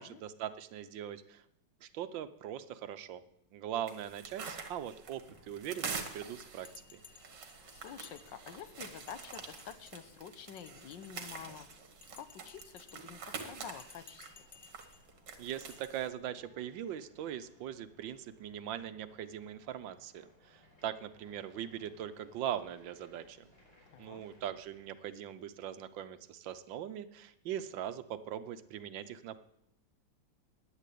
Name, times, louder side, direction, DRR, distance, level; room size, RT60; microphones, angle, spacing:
voice 1, 0.0-1.4 1.8-3.2 3.5-7.0 15.4-23.4 24.0-29.4, right 10 dB, 80° right, 12 dB, 1.5 m, -41 dB
sound 1, 3.9-16.1, right 5 dB, 65° right, 2.2 m, -46 dB
sound 2, 5.2-24.8, left 1 dB, 35° left, 5.5 m, -65 dB
Bell, 6.6-8.7 9.1-10.1 10.5-11.5 12.0-13.3 13.7-15.0 15.7-15.9, left 6 dB, 55° left, 0.4 m, -58 dB
voice 2, 7.7-11.7 12.1-14.3 23.9-24.2, left 8 dB, 75° left, 11 dB, 1.6 m, -48 dB
11.5 x 10.0 x 8.4 m, 0.82 s
omnidirectional pair, 2.0 m